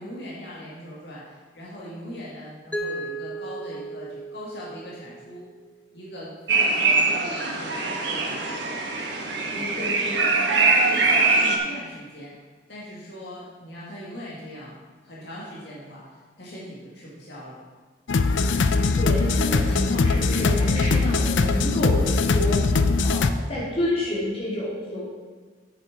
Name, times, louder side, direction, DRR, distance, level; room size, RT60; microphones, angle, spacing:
voice 1, 0.0-5.4 5.9-8.7 10.6-12.3 12.7-14.7 15.0-17.6, equal, 65° left, -6 dB, 2.0 m, -40 dB
Mallet percussion, 2.7-5.6, right 2 dB, 5° left, 0.6 m, -35 dB
sound 1, 6.5-11.6, right 3 dB, 75° right, 1.3 m, -22 dB
voice 2, 9.5-10.8 18.5-25.0, left 1 dB, 30° left, -7 dB, 3.0 m, -30 dB
sound 2, 18.1-23.3, left 3 dB, 90° left, 0.5 m, -21 dB
8.4 x 7.1 x 5.0 m, 1.4 s
head